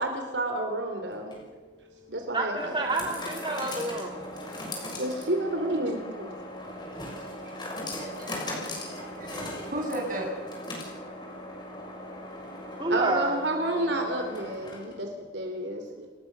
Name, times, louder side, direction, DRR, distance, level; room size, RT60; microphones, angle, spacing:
voice 1, 0.0-1.4 2.1-2.8 4.9-6.3 7.4-7.5 12.9-16.1, right 1 dB, 70° right, 4 dB, 3.4 m, -30 dB
sound 1, 1.1-15.1, left 1 dB, 25° left, 6.5 m, -39 dB
voice 2, 2.3-4.3 12.8-13.4, right 2 dB, 25° right, 1 dB, 2.0 m, -29 dB
voice 3, 8.0-10.3, right 1 dB, 45° right, 0 dB, 8.0 m, -36 dB
28.5 x 20.0 x 6.9 m, 1.4 s
head